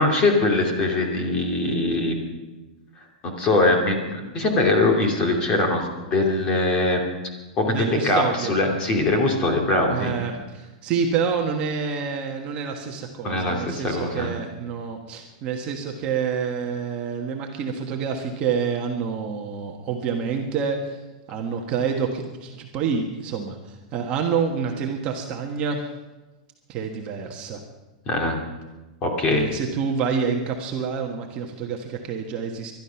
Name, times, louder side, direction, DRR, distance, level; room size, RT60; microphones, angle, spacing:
voice 1, 0.0-2.2 3.2-7.0 7.6-10.1 13.2-14.3 28.1-28.4 29.0-29.5, left 2 dB, 20° left, 1 dB, 2.7 m, -22 dB
voice 2, 7.6-8.5 9.9-21.0 21.3-25.8 26.7-27.6 29.2-32.7, right 6 dB, 25° right, 1 dB, 1.3 m, -27 dB
21.0 x 12.0 x 5.8 m, 1.1 s
supercardioid pair, 165°, 4 cm